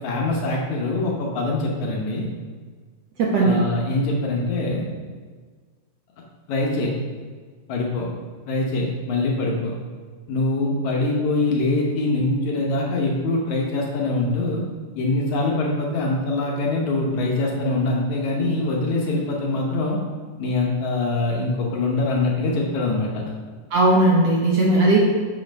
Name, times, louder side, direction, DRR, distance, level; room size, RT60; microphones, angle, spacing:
voice 1, 0.0-2.3 3.4-4.9 6.5-6.9 7.7-8.1 8.5-9.7 10.3-14.6 15.0-20.0 20.4-23.3, left 2 dB, 70° left, -1 dB, 2.0 m, -23 dB
voice 2, 3.2-3.6 23.7-25.0, right 2 dB, 65° right, -3 dB, 1.7 m, -17 dB
7.2 x 5.6 x 5.2 m, 1.5 s
omnidirectional pair, 3.9 m